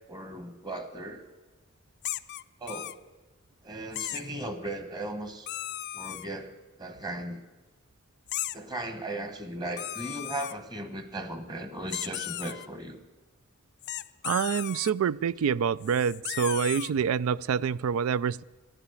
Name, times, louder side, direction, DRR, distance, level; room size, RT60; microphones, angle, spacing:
voice 1, 0.1-1.2 2.6-3.0 3.6-5.5 5.9-6.5 6.8-7.4 8.5-13.0, right 1 dB, 20° right, 1.2 m, -37 dB
sound 1, 2.0-3.0 3.9-4.3 5.5-6.3 8.3-8.6 9.8-10.5 11.9-12.7 13.8-14.9 15.8-16.9, left 14 dB, 55° left, 0.4 m, -36 dB
voice 2, 14.2-18.4, right 7 dB, 90° right, 0.3 m, -27 dB
12.5 x 10.0 x 8.3 m
head